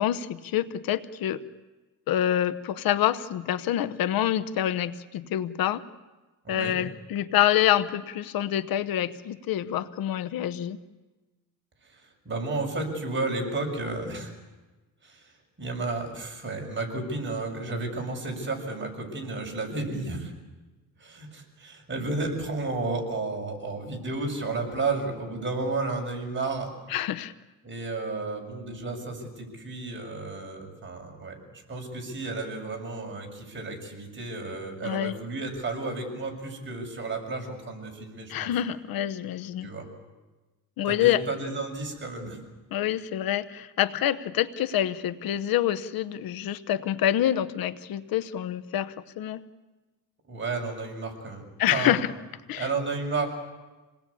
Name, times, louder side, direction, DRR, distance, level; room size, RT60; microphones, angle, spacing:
voice 1, 0.0-1.4 2.1-5.8 6.5-10.8 26.9-27.3 34.8-35.2 38.3-39.7 40.8-41.2 42.7-49.4 51.6-52.1 52.5-52.7, left 11 dB, 70° left, 13 dB, 1.0 m, -26 dB
voice 2, 6.4-6.8 11.9-14.3 15.0-15.3 15.6-20.3 21.0-26.7 27.6-38.5 39.6-39.9 40.9-42.4 50.3-52.0 52.6-53.3, right 3 dB, 30° right, 2 dB, 6.9 m, -32 dB
27.5 x 19.5 x 8.5 m, 1.2 s
cardioid pair, 105°, 36 cm